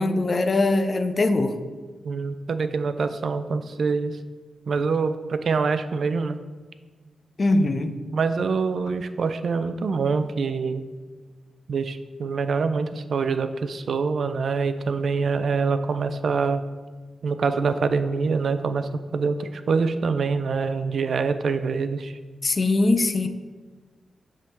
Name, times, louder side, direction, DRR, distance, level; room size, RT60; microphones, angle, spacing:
voice 1, 0.0-1.6 7.4-7.9 22.4-23.3, left 2 dB, 45° left, 8 dB, 0.5 m, -21 dB
voice 2, 2.0-4.2 4.7-6.4 8.1-10.8 11.7-16.6 17.2-22.2, right 4 dB, 70° right, 10 dB, 0.4 m, -25 dB
6.5 x 3.6 x 4.4 m, 1.4 s
cardioid pair, 55°, 0 cm